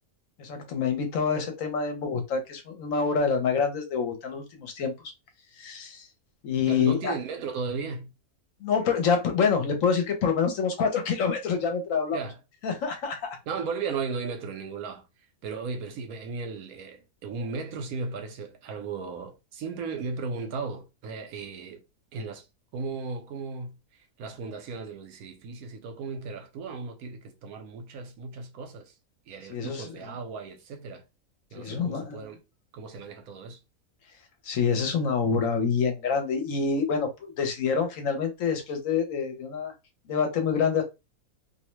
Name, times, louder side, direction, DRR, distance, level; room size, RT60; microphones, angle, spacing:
voice 1, 0.4-4.9 5.6-6.1 6.4-7.1 8.6-12.2 12.6-13.4 29.5-30.1 31.6-32.3 34.4-39.7 40.1-40.8, left 6 dB, 65° left, 1.0 m, -27 dB
voice 2, 6.7-8.1 12.1-12.4 13.5-15.1 15.4-21.8 22.1-22.5 22.7-23.8 24.2-28.9 29.3-31.0 31.5-32.4 32.7-33.6, right 4 dB, 80° right, 1.1 m, -35 dB
2.6 x 2.1 x 3.0 m
omnidirectional pair, 1.5 m